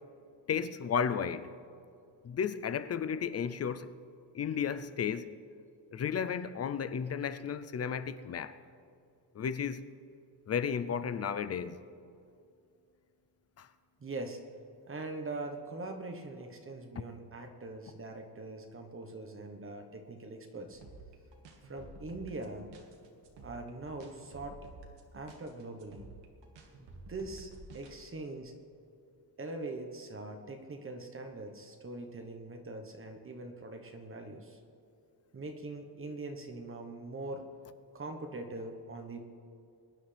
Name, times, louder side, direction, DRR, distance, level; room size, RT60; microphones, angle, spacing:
voice 1, 0.5-1.5 2.2-3.9 4.3-5.3 5.9-8.6 9.3-9.8 10.5-11.8 13.6-13.7 17.0-17.1, left 7 dB, 40° left, 0.5 m, -33 dB
voice 2, 14.0-14.4 14.9-20.8 21.6-22.7 23.4-24.6 25.1-26.1 26.8-28.5 29.4-34.6 35.3-37.4 37.9-39.2, right 2 dB, 30° right, 1.1 m, -42 dB
sound 1, 20.7-27.9, right 2 dB, 85° right, 1.9 m, -52 dB
22.5 x 10.5 x 3.4 m
cardioid pair, 150°, 41 cm